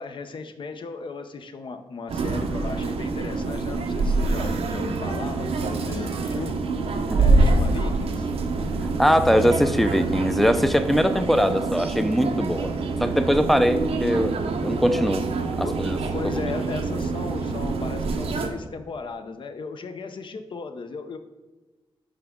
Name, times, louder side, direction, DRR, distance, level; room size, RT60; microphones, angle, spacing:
voice 1, 0.0-6.6 7.2-8.3 14.0-14.2 15.6-15.8 16.1-21.2, left 4 dB, 55° left, 8 dB, 0.5 m, -36 dB
sound 1, 2.1-18.5, right 3 dB, 90° right, 0.7 m, -25 dB
voice 2, 9.0-12.7 13.0-14.3 14.6-15.3 15.6-16.0 16.4-16.5, equal, ahead, 10 dB, 0.4 m, -21 dB
9.8 x 3.5 x 3.6 m, 1.2 s
wide cardioid pair, 125°, 10 cm